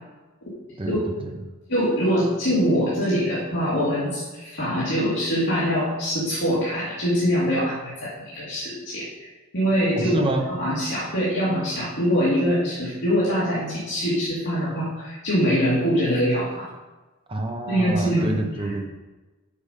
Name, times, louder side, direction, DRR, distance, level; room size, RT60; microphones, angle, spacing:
voice 1, 0.8-1.3 9.9-10.5 17.3-18.8, right 2 dB, 25° right, 3 dB, 1.0 m, -27 dB
voice 2, 1.7-16.7 17.7-18.4, equal, 55° left, -9 dB, 2.2 m, -23 dB
7.0 x 6.6 x 5.3 m, 1.2 s
head